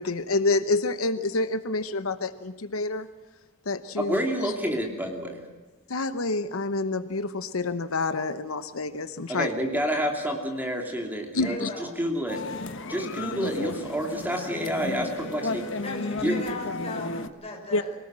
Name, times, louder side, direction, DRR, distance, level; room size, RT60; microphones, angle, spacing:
voice 1, 0.0-3.1 3.7-4.5 5.9-9.5 11.3-11.7 13.4-13.5 17.7-17.8, left 3 dB, 80° left, 11 dB, 0.9 m, -28 dB
voice 2, 4.0-5.4 9.3-12.4 12.9-15.7 16.2-16.4, equal, 10° right, 2 dB, 2.8 m, -29 dB
voice 3, 11.4-11.9 15.8-18.0, left 2 dB, 30° left, 1 dB, 5.7 m, -38 dB
sound 1, 12.3-17.3, left 2 dB, 65° left, 1.4 m, -33 dB
24.5 x 18.5 x 7.5 m, 1.2 s
head